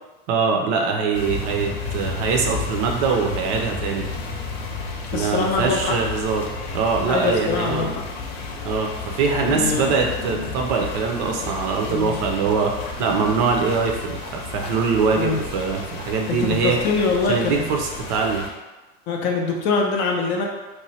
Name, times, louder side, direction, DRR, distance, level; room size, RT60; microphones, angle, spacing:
voice 1, 0.3-4.1 5.1-6.5 6.7-7.9 8.6-12.7 13.0-16.8 17.3-18.4, right 5 dB, 45° right, 2 dB, 0.5 m, -23 dB
sound 1, 1.1-18.5, left 4 dB, 70° left, 0.8 m, -32 dB
voice 2, 5.1-6.0 7.1-8.0 9.3-9.9 11.9-12.2 15.1-15.4 16.4-17.6 19.1-20.5, left 4 dB, 35° left, 1 dB, 0.4 m, -23 dB
3.0 x 2.2 x 4.1 m, 1.2 s
supercardioid pair, 150°, 31 cm